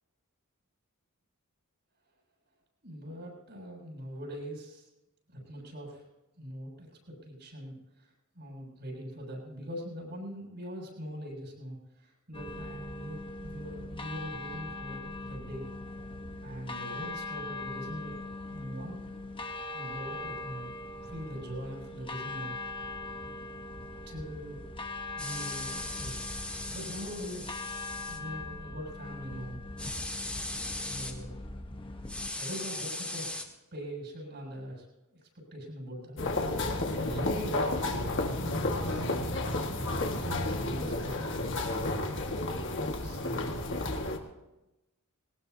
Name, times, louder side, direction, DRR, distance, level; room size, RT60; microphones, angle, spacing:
voice 1, 2.8-4.9 5.3-6.0 6.4-8.1 8.4-15.7 16.4-18.1 18.5-19.0 19.7-20.7 21.0-22.5 24.1-24.6 25.1-26.3 26.7-27.6 28.1-29.6 30.6-31.4 32.3-33.4 33.7-36.2 37.0-39.0 39.7-41.7 43.0-43.5, equal, 55° right, -2 dB, 7.4 m, -42 dB
sound 1, 12.3-32.3, left 2 dB, 25° left, 1.1 m, -41 dB
sound 2, 25.2-28.2 29.8-31.1 32.1-33.4, left 2 dB, 5° left, 2.0 m, -38 dB
sound 3, 36.2-44.2, left 2 dB, 60° left, 1.8 m, -31 dB
20.5 x 19.0 x 2.8 m, 0.97 s
head